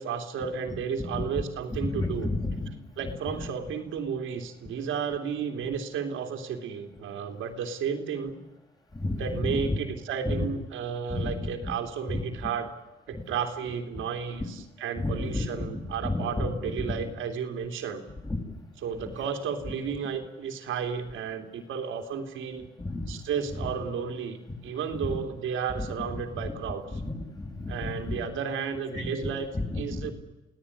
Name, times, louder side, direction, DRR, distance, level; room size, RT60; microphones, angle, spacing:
voice 1, 0.0-2.3 3.0-8.4 9.2-12.7 13.1-14.4 14.8-18.0 18.8-22.7 23.1-26.8 27.7-29.5 29.8-30.1, right 6 dB, 80° right, 4 dB, 3.1 m, -32 dB
voice 2, 1.0-1.4 1.7-2.7 3.0-3.5 8.9-9.8 10.2-10.5 11.1-11.4 11.6-11.7 12.1-12.2 13.1-13.2 14.0-14.1 14.9-15.5 15.9-16.6 17.0-17.1 18.2-18.4 19.0-19.3 22.8-23.1 23.5-23.7 25.0-25.2 25.8-25.9 26.1-26.5 26.9-28.2 28.9-29.3 29.5-30.1, left 2 dB, 20° left, 2 dB, 7.2 m, -32 dB
29.0 x 17.0 x 10.0 m, 1.0 s
cardioid pair, 90°, 20 cm